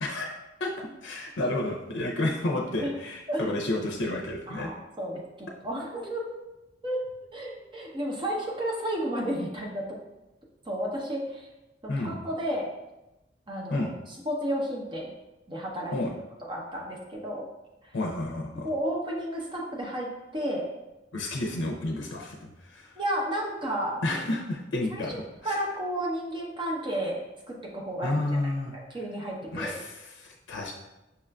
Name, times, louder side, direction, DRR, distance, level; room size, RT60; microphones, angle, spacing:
voice 1, 0.0-0.3 0.6-0.7 1.0-4.7 11.9-12.2 13.7-13.9 15.9-16.1 17.9-18.7 21.1-23.0 24.0-25.2 25.4-25.6 28.0-28.7 29.5-30.7, left 2 dB, 85° left, 0 dB, 0.5 m, -31 dB
voice 2, 4.5-6.3 6.8-7.0 7.3-10.0 10.6-11.5 11.8-12.7 13.5-13.9 14.2-15.1 15.5-16.0 16.5-17.4 17.8-17.9 18.6-20.7 23.0-24.0 24.9-28.2 28.4-29.7, equal, 25° right, -2 dB, 0.6 m, -32 dB
5.6 x 2.4 x 2.2 m, 0.98 s
head